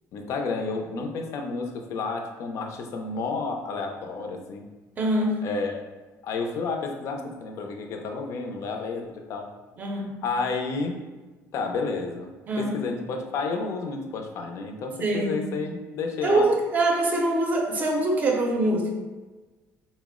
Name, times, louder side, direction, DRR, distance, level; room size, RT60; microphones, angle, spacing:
voice 1, 0.1-4.6 5.4-5.9 6.2-9.5 10.2-11.0 11.5-16.5, left 4 dB, 55° left, 4 dB, 0.5 m, -31 dB
voice 2, 5.0-5.4 9.8-10.2 12.5-12.8 15.0-15.4 16.2-18.9, right 2 dB, 25° right, 1 dB, 0.6 m, -24 dB
4.3 x 2.0 x 3.6 m, 1.2 s
cardioid pair, 160°, 6 cm